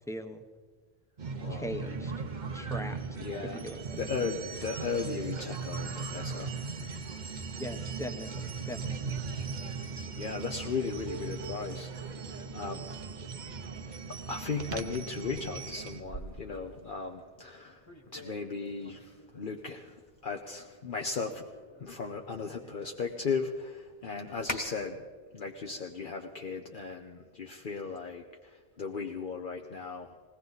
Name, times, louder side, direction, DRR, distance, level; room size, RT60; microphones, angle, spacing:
voice 1, 0.1-0.4 1.5-2.1 2.5-3.0 3.4-3.8 7.6-9.2, equal, 5° left, 6 dB, 0.8 m, -40 dB
sound 1, 1.2-16.0, right 4 dB, 50° right, 1.0 m, -38 dB
voice 2, 1.3-1.7 3.2-3.6 3.9-6.5 10.2-12.9 14.3-17.9 18.1-20.0 20.2-21.5 21.8-25.0 25.3-30.2, left 5 dB, 60° left, 3 dB, 1.0 m, -36 dB
sound 2, 13.9-24.6, left 1 dB, 25° left, 1.6 m, -48 dB
20.5 x 17.5 x 4.0 m, 1.5 s
omnidirectional pair, 1.0 m